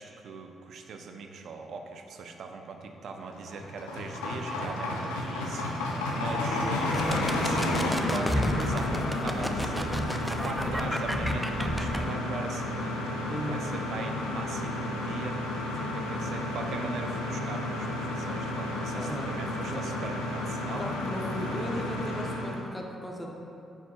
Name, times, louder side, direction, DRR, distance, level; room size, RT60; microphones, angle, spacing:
voice 1, 0.0-13.2 13.5-20.9 21.4-21.8, right 4 dB, 60° right, 5 dB, 0.5 m, -40 dB
sound 1, 3.3-22.7, left 2 dB, 80° left, 0.5 m, -32 dB
sound 2, 6.9-12.1, equal, ahead, 0.4 m, -32 dB
voice 2, 13.3-13.7 18.9-19.3 19.7-19.9 20.7-23.3, equal, 15° left, 0 dB, 0.8 m, -36 dB
8.8 x 4.7 x 2.3 m, 2.8 s
hypercardioid pair, 40°, 0 cm